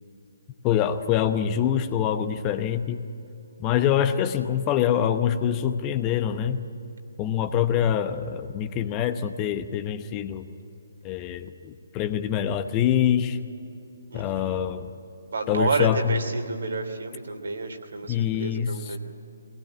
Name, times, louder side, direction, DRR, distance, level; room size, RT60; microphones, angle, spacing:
voice 1, 0.6-3.0 3.6-6.6 7.2-10.4 11.0-13.4 14.1-14.9 15.5-16.2 18.1-19.0, left 9 dB, 20° left, 9 dB, 0.9 m, -25 dB
voice 2, 14.1-14.6 15.3-19.0, right 3 dB, 60° right, 5 dB, 2.9 m, -30 dB
22.5 x 19.0 x 10.0 m, 2.8 s
figure-of-eight pair, 140°, 0 cm